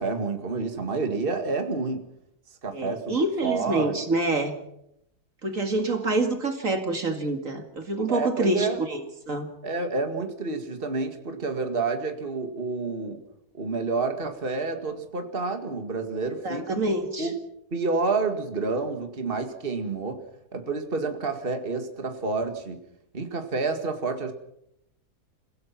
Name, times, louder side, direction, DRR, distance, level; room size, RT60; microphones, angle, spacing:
voice 1, 0.0-2.0 2.6-3.2 3.4-4.0 8.1-8.8 9.6-13.2 13.5-16.8 17.2-17.4 17.7-20.2 20.5-22.8 23.1-24.3, right 3 dB, 35° right, 6 dB, 2.3 m, -29 dB
voice 2, 2.7-4.5 5.4-9.5 16.4-17.3, right 2 dB, 55° right, 6 dB, 2.5 m, -27 dB
29.0 x 17.0 x 6.0 m, 0.77 s
omnidirectional pair, 1.7 m